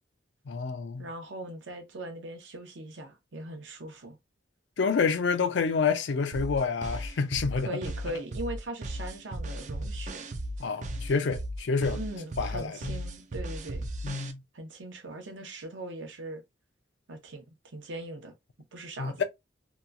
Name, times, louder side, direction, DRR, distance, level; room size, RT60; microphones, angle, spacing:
voice 1, 0.5-1.0 4.8-7.7 10.6-12.0 12.4-13.0 14.0-14.4 19.0-19.2, left 5 dB, 65° left, 0.4 m, -28 dB
voice 2, 1.0-4.2 7.6-10.3 11.9-13.8 14.5-16.4 17.1-17.4 17.7-18.3 18.7-19.2, right 1 dB, 75° right, 0.8 m, -40 dB
sound 1, 6.3-14.3, right 1 dB, 40° right, 0.4 m, -36 dB
2.8 x 2.3 x 2.4 m
head